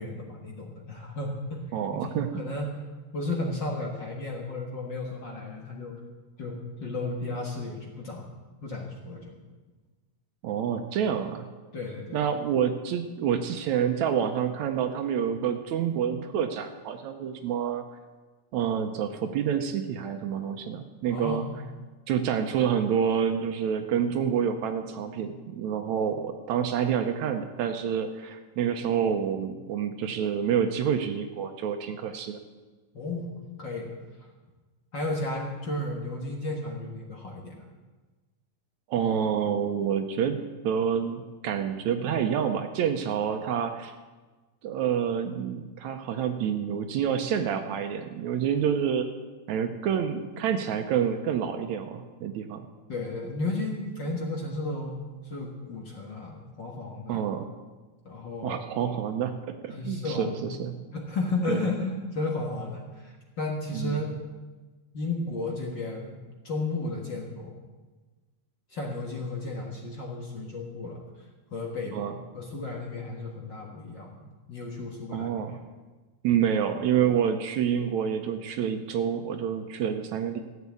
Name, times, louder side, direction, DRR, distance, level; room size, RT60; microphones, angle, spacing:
voice 1, 0.0-1.6 1.9-2.8 3.1-5.9 6.4-8.2 8.6-9.3 11.7-12.2 21.1-21.6 32.9-33.3 33.6-33.9 34.9-37.6 52.9-57.2 58.0-58.6 59.7-60.5 60.9-64.1 64.9-67.5 68.7-71.0 71.5-72.0 72.3-74.2 74.5-75.3, left 2 dB, 45° left, 0 dB, 1.6 m, -33 dB
voice 2, 1.7-2.3 10.4-11.5 12.1-17.8 18.5-21.5 22.1-32.4 38.9-43.9 44.6-49.0 49.5-52.7 57.1-57.5 58.4-60.8 61.5-61.7 63.7-64.0 71.9-72.1 75.1-75.6 76.2-80.4, right 8 dB, 75° right, 7 dB, 2.0 m, -28 dB
14.0 x 8.2 x 8.3 m, 1.3 s
omnidirectional pair, 3.6 m